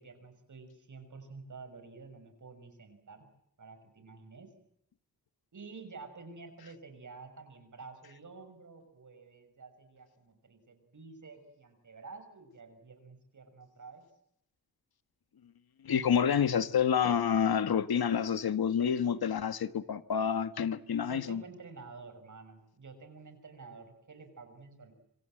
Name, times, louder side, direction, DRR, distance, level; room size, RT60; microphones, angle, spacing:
voice 1, 0.0-3.3 3.6-4.5 5.5-14.0 21.0-24.9, right 4 dB, 55° right, 6.3 m, -50 dB
voice 2, 15.8-21.4, left 7 dB, 85° left, 1.4 m, -28 dB
26.5 x 26.0 x 7.7 m
wide cardioid pair, 155°, 36 cm